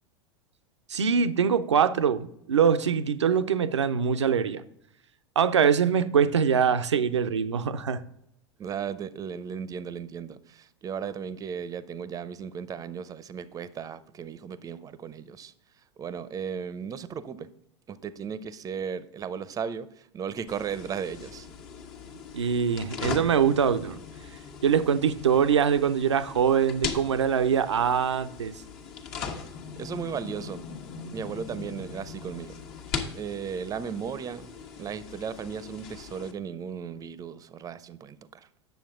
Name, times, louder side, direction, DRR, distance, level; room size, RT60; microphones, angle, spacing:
voice 1, 0.9-4.6 5.4-8.0 22.3-24.0 24.6-28.5, right 7 dB, 85° right, 11 dB, 0.6 m, -23 dB
voice 2, 8.6-15.5 16.0-17.5 17.9-21.5 29.8-30.6 31.1-32.6 33.1-34.5 34.8-38.5, right 7 dB, 25° right, 15 dB, 0.6 m, -36 dB
sound 1, 20.5-36.3, left 6 dB, 55° left, 1.4 m, -40 dB
9.3 x 7.0 x 3.7 m, 0.76 s
hypercardioid pair, 90°, 15 cm